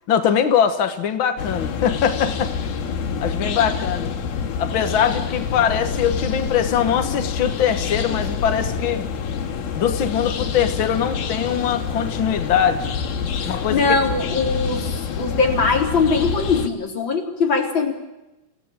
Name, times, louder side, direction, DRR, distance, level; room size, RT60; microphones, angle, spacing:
voice 1, 0.1-2.7 3.2-4.1 4.6-9.1 9.7-12.9 13.4-13.9, left 8 dB, 65° left, 7 dB, 1.2 m, -22 dB
sound 1, 1.4-16.7, left 6 dB, 85° left, 4.0 m, -27 dB
voice 2, 13.4-14.9 15.2-17.9, left 4 dB, 30° left, 1 dB, 4.2 m, -21 dB
27.5 x 17.5 x 8.9 m, 0.99 s
omnidirectional pair, 4.3 m